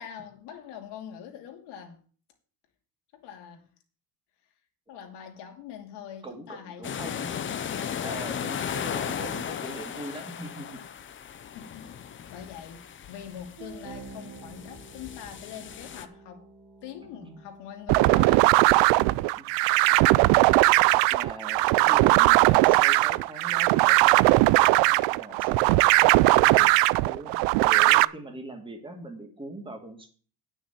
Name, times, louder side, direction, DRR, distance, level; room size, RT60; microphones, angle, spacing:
voice 1, 0.0-2.0 3.1-3.7 4.9-7.6 11.5-16.5 16.8-18.6, left 8 dB, 70° left, 2.7 m, -43 dB
voice 2, 6.2-7.3 8.0-10.8 17.2-17.3 19.4-19.5 20.9-26.0 26.3-26.7 27.0-27.4 27.6-30.1, right 1 dB, 10° right, 2.3 m, -41 dB
sound 1, 6.8-16.1, left 8 dB, 30° left, 0.8 m, -36 dB
sound 2, 13.6-18.9, right 4 dB, 55° right, 3.0 m, -49 dB
sound 3, 17.9-28.0, right 21 dB, 80° right, 0.5 m, -19 dB
9.6 x 6.3 x 8.4 m
cardioid pair, 150°, 42 cm